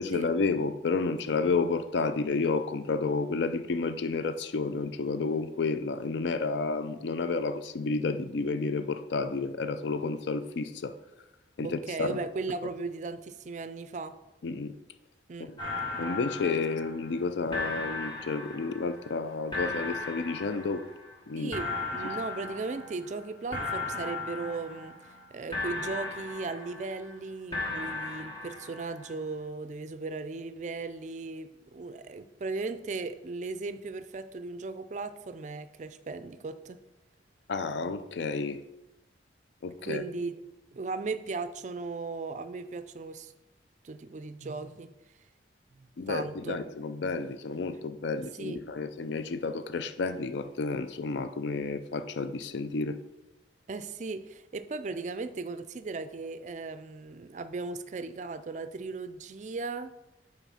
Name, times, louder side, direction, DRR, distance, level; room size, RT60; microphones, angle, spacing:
voice 1, 0.0-10.9 11.6-12.2 14.4-14.7 15.5-15.6 16.0-20.8 21.3-21.5 37.5-38.6 39.6-40.0 46.0-53.0, left 4 dB, 70° left, 0.4 m, -31 dB
voice 2, 11.6-14.2 15.3-15.5 21.4-36.8 39.8-40.4 40.7-43.3 43.8-44.9 45.8-46.6 48.3-48.6 53.7-59.9, right 3 dB, 40° right, 0.4 m, -37 dB
sound 1, 15.6-17.2 17.5-19.2 19.5-21.1 21.5-23.2 23.5-25.2 25.5-27.1 27.5-29.1, left 3 dB, 25° left, 1.4 m, -36 dB
5.8 x 4.5 x 5.6 m
head